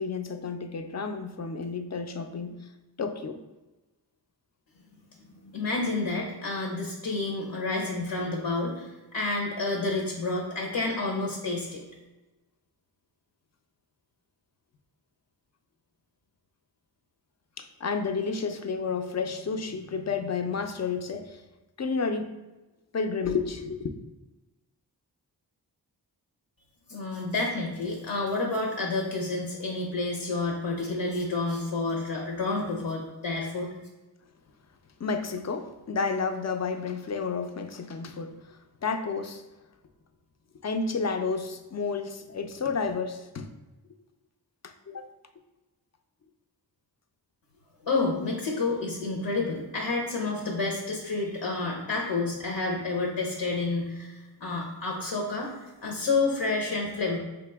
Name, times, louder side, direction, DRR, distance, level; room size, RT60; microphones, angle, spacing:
voice 1, 0.0-2.6 3.0-3.4 17.6-21.4 21.8-22.4 22.9-23.9 35.0-39.4 40.6-43.5 44.6-45.1, left 5 dB, 40° left, 7 dB, 0.4 m, -31 dB
voice 2, 5.4-11.8 26.9-33.7 47.8-57.2, left 3 dB, 80° left, -2 dB, 0.8 m, -29 dB
4.0 x 2.9 x 3.4 m, 1.1 s
wide cardioid pair, 50°, 42 cm